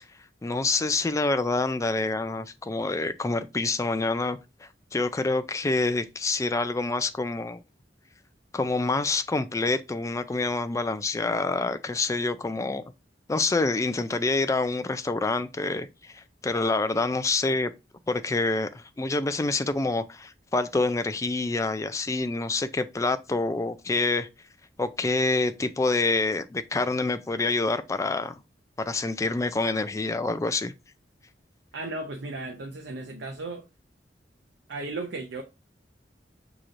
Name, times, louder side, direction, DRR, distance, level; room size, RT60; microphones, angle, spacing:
voice 1, 0.4-7.6 8.5-12.9 13.3-17.7 18.1-24.3 24.8-28.4 28.8-30.7, left 3 dB, 20° left, 0.3 m, -27 dB
voice 2, 31.7-33.6 34.7-35.4, right 2 dB, 85° right, 0.6 m, -35 dB
6.3 x 3.0 x 2.5 m
head